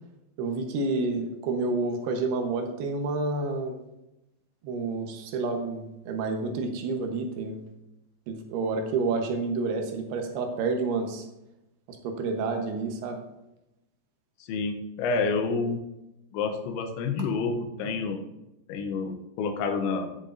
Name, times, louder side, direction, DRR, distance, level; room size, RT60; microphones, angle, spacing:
voice 1, 0.4-3.8 4.6-7.6 8.3-11.3 12.0-13.2, right 3 dB, 70° right, 3 dB, 2.9 m, -29 dB
voice 2, 14.4-15.8 16.3-18.2 18.7-20.2, left 4 dB, 90° left, 5 dB, 3.2 m, -29 dB
15.0 x 6.5 x 2.6 m, 0.92 s
omnidirectional pair, 5.2 m